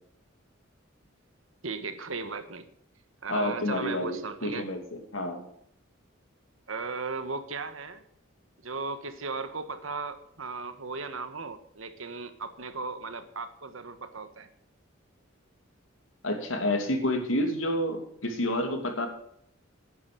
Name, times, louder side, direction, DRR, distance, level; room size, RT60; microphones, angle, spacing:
voice 1, 1.6-2.7 3.2-4.7 6.7-8.0 8.6-14.5, right 4 dB, 80° right, 10 dB, 1.4 m, -36 dB
voice 2, 3.3-5.5 16.2-19.1, left 1 dB, 80° left, 5 dB, 2.7 m, -29 dB
10.5 x 9.9 x 6.8 m, 0.71 s
head